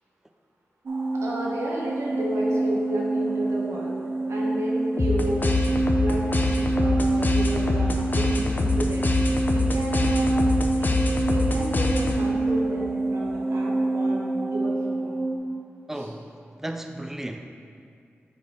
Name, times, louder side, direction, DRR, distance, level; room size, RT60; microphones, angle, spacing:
sound 1, 0.9-15.4, right 2 dB, 65° right, 0.9 m, -26 dB
voice 1, 1.1-4.0 4.3-5.5 6.0-6.2 6.8-9.1 9.5-10.4 10.8-10.9 11.3-15.2 15.9-16.1, right 1 dB, 90° right, -4 dB, 1.2 m, -32 dB
sound 2, 5.0-12.4, left 2 dB, 45° left, 0.6 m, -25 dB
voice 2, 15.9-16.3 16.6-17.4, right 1 dB, 10° right, 5 dB, 0.4 m, -34 dB
7.1 x 4.4 x 4.3 m, 2.3 s
cardioid pair, 55°, 5 cm